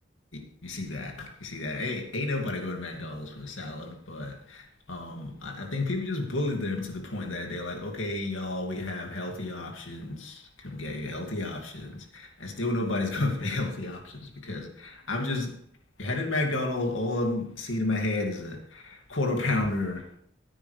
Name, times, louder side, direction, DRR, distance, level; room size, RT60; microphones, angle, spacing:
voice 1, 0.3-15.6 16.0-20.2, left 2 dB, 85° left, 2.4 m, -32 dB
15.5 x 9.0 x 3.4 m
head